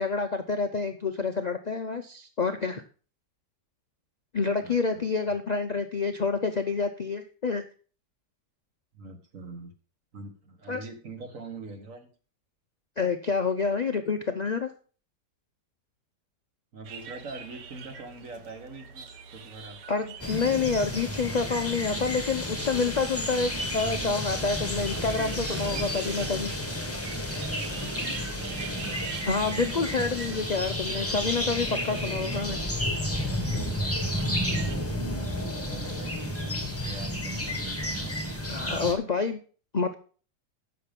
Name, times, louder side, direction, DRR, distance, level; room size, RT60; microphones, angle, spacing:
voice 1, 0.0-2.8 4.3-7.6 10.7-10.8 13.0-14.7 19.9-26.5 29.2-32.6 38.5-39.4 39.7-39.9, left 4 dB, 75° left, 7 dB, 0.3 m, -28 dB
voice 2, 4.6-5.1 8.9-9.7 10.1-12.1 16.7-19.8 28.1-28.6 35.6-38.1, right 3 dB, 50° right, 6 dB, 1.8 m, -43 dB
sound 1, 16.8-34.8, right 6 dB, 90° right, 1.7 m, -44 dB
sound 2, 20.2-38.9, left 1 dB, 10° left, 1.2 m, -31 dB
10.0 x 6.6 x 5.3 m, 0.40 s
omnidirectional pair, 1.8 m